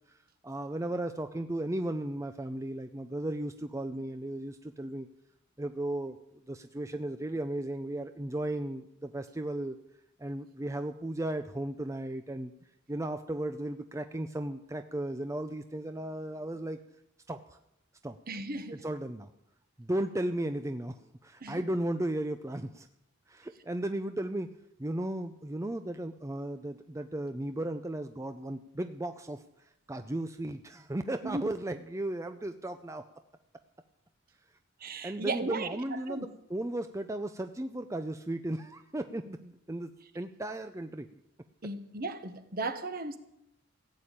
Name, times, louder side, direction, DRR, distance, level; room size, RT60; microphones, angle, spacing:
voice 1, 0.4-5.1 5.6-6.2 6.5-9.8 10.2-12.5 12.9-16.8 17.3-17.6 18.0-18.2 18.7-19.3 19.8-22.9 23.3-24.5 24.8-29.4 29.9-33.0 35.0-41.2, right 1 dB, 15° right, 0.5 m, -35 dB
voice 2, 18.3-18.8 21.4-21.6 31.2-31.5 34.8-36.3 41.6-43.2, right 3 dB, 50° right, 1.2 m, -36 dB
15.5 x 8.4 x 8.8 m
head